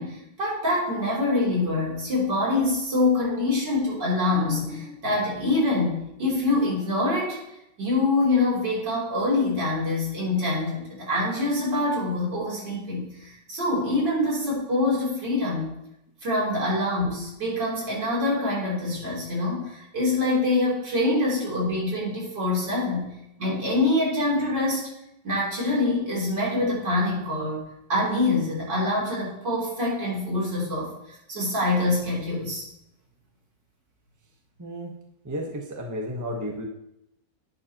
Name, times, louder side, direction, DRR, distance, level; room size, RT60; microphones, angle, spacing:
voice 1, 0.0-7.4 7.8-15.8 16.2-23.1 23.4-24.9 25.2-32.6, left 2 dB, 80° right, -5 dB, 4.1 m, -25 dB
voice 2, 34.6-34.9 35.2-36.6, equal, 10° right, 0 dB, 1.1 m, -32 dB
11.0 x 9.6 x 3.0 m, 0.82 s
omnidirectional pair, 1.9 m